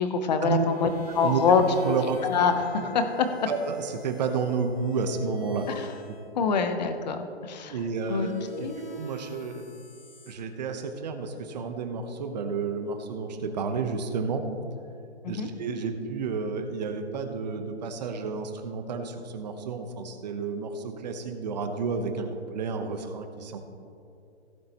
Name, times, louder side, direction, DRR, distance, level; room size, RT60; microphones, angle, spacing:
voice 1, 0.0-1.6 2.2-3.3 5.7-5.9 6.4-7.8 8.1-8.8 15.2-15.5, left 6 dB, 40° left, 8 dB, 1.0 m, -25 dB
sound 1, 0.5-6.3 8.1-10.3, left 2 dB, 20° left, 1.6 m, -46 dB
voice 2, 1.1-1.4 1.8-2.2 3.5-5.7 7.7-8.3 8.6-8.7 8.9-9.7 10.3-14.5 15.3-22.3 22.5-23.6, right 5 dB, 40° right, 6 dB, 1.0 m, -31 dB
16.5 x 7.5 x 3.0 m, 2.6 s
hypercardioid pair, 155°, 34 cm